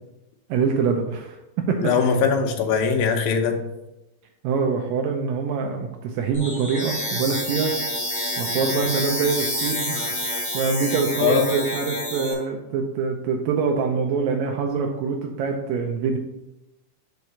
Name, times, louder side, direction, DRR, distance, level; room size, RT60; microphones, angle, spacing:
voice 1, 0.5-2.1 4.4-7.8 8.4-16.2, right 5 dB, 80° right, 2 dB, 2.3 m, -25 dB
voice 2, 1.8-3.6 8.7-8.8 11.2-11.5, left 6 dB, 85° left, 4 dB, 2.7 m, -21 dB
sound 1, 6.3-12.3, equal, 5° left, 1.9 m, -28 dB
5.7 x 4.7 x 5.4 m, 0.93 s
omnidirectional pair, 4.0 m